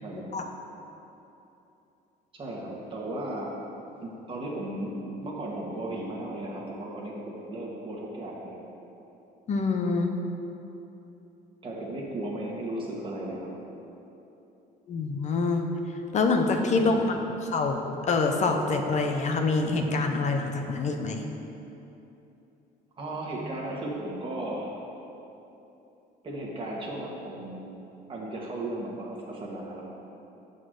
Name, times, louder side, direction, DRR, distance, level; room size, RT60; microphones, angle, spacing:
voice 1, 0.0-0.3 2.3-3.5 4.0-8.6 11.6-13.5 16.7-17.2 23.0-24.8 26.2-27.6 28.1-29.8, right 1 dB, 30° right, -4 dB, 1.7 m, -35 dB
voice 2, 9.5-10.1 14.9-15.7 16.1-17.1 17.5-17.8 18.1-21.2, left 3 dB, 45° left, 4 dB, 0.7 m, -25 dB
7.2 x 4.1 x 6.4 m, 3.0 s
cardioid pair, 110°, 17 cm